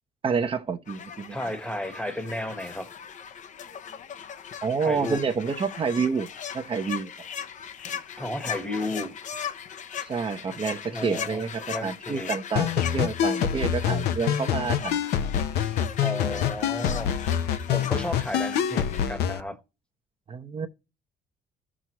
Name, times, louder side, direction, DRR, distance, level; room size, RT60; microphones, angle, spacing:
voice 1, 0.2-1.4 4.6-6.3 6.5-7.1 10.0-15.0 20.3-20.7, right 5 dB, 30° right, 0.8 m, -28 dB
sound 1, 0.9-19.1, left 8 dB, 45° left, 0.8 m, -38 dB
voice 2, 1.3-2.9 4.8-5.2 8.1-9.1 10.9-12.3 16.0-19.6, left 1 dB, 5° left, 1.2 m, -33 dB
sound 2, 12.6-19.4, left 9 dB, 75° left, 0.9 m, -26 dB
14.0 x 6.2 x 3.0 m
cardioid pair, 110°, 17 cm